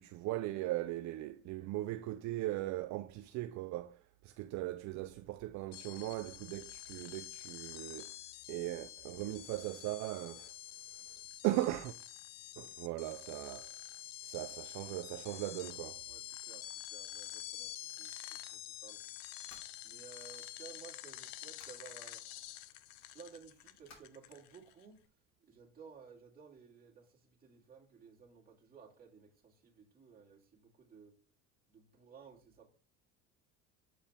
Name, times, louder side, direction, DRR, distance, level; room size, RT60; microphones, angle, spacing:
voice 1, 0.0-8.1 8.5-10.5 11.4-11.9 12.6-13.7 14.2-16.0, right 16 dB, 55° right, 0.5 m, -38 dB
sound 1, 5.7-24.8, left 13 dB, 80° left, 0.7 m, -48 dB
voice 2, 16.1-19.0 19.8-22.3 22.6-22.8 23.1-31.1 31.7-32.7, right 6 dB, 25° right, 2.4 m, -56 dB
sound 2, 19.5-20.5 21.2-21.9 23.9-24.1, left 4 dB, 50° left, 2.9 m, -60 dB
8.0 x 4.9 x 3.5 m
cardioid pair, 125°, 34 cm